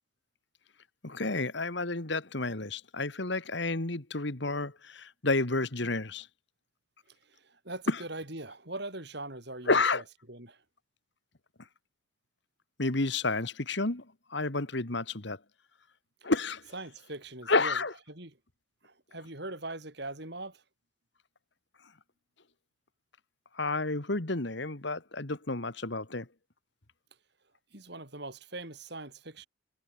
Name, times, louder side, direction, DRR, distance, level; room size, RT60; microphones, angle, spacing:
voice 1, 1.0-6.3 7.9-8.0 9.7-10.0 12.8-14.1 14.3-15.4 16.2-16.6 17.5-17.9 23.6-26.3, left 3 dB, 60° left, 1.8 m, -30 dB
voice 2, 7.1-10.6 16.7-18.4 18.8-20.6 27.7-29.5, right 2 dB, 55° right, 5.1 m, -42 dB
head